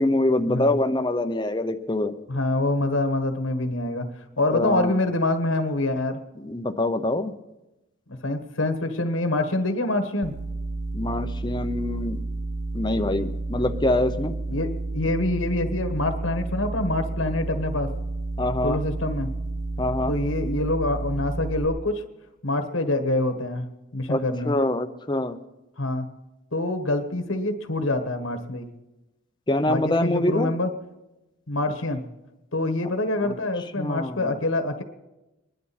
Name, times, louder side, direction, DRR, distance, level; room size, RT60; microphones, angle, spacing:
voice 1, 0.0-2.1 4.5-5.0 6.4-7.3 10.9-12.2 12.7-14.4 18.4-18.8 19.8-20.1 24.1-25.4 29.5-30.5 33.2-33.3 33.8-34.4, left 1 dB, 20° left, 8 dB, 0.7 m, -25 dB
voice 2, 2.3-4.1 4.4-6.2 8.2-10.3 14.5-17.9 18.6-19.3 20.1-22.0 22.4-23.7 23.9-24.5 25.8-26.1 26.5-28.7 29.7-30.7 31.5-32.0 32.5-34.8, left 2 dB, 80° left, 7 dB, 1.5 m, -25 dB
sound 1, 10.2-21.7, right 2 dB, 65° right, 1.2 m, -31 dB
25.0 x 11.0 x 4.3 m, 0.99 s
head